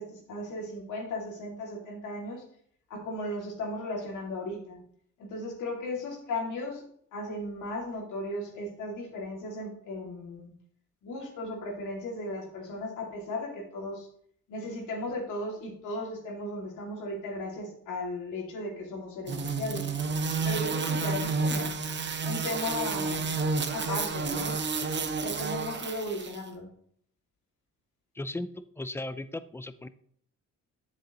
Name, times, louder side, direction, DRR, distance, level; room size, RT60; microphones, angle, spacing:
voice 1, 0.0-2.4 2.9-4.8 5.2-6.8 7.1-10.5 11.0-14.1 14.5-19.9 20.4-21.8 22.2-23.3 23.7-24.6 25.2-26.7, left 1 dB, 85° left, 0 dB, 2.5 m, -36 dB
sound 1, 19.3-26.4, right 4 dB, 35° right, 0.9 m, -30 dB
voice 2, 28.1-28.5 28.8-29.9, left 2 dB, 10° left, 13 dB, 0.5 m, -36 dB
7.7 x 7.5 x 3.0 m, 0.64 s
cardioid pair, 90°, 30 cm